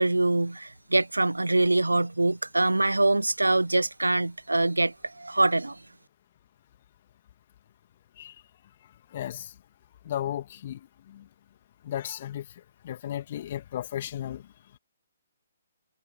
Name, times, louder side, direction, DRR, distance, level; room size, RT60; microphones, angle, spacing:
voice 1, 0.0-5.8, right 2 dB, 85° right, 0.6 m, -24 dB
voice 2, 9.1-9.5 10.0-11.3 11.8-12.5 12.8-14.5, left 11 dB, 45° left, 2.5 m, -34 dB
figure-of-eight pair, 130°, 0 cm